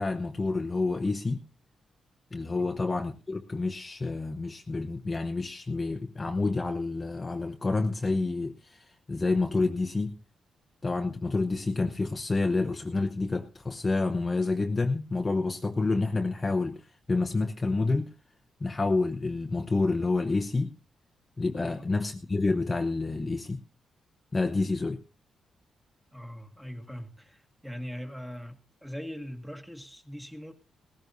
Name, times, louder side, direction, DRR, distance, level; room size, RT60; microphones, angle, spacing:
voice 1, 0.0-1.4 2.3-10.2 10.8-18.1 18.6-20.7 21.4-23.6 24.3-25.0, left 3 dB, 20° left, 0.9 m, -28 dB
voice 2, 21.6-21.9 26.1-30.5, equal, 5° right, 2.0 m, -41 dB
18.5 x 15.5 x 2.7 m
cardioid pair, 115°, 0 cm